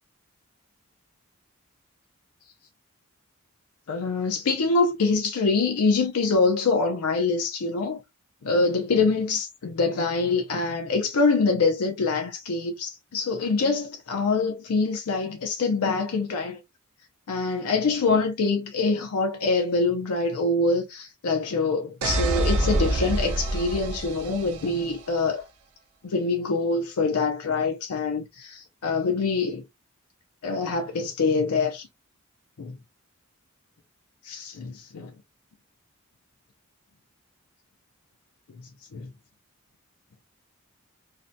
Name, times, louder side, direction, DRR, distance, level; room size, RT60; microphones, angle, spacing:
voice 1, 3.9-8.0 8.4-16.6 17.3-25.4 26.0-29.6 30.4-31.9 32.6-32.8 34.2-35.1 38.9-39.1, left 3 dB, 90° left, 0.5 m, -25 dB
sound 1, 22.0-24.9, right 1 dB, 80° right, 0.6 m, -26 dB
2.5 x 2.1 x 2.6 m
head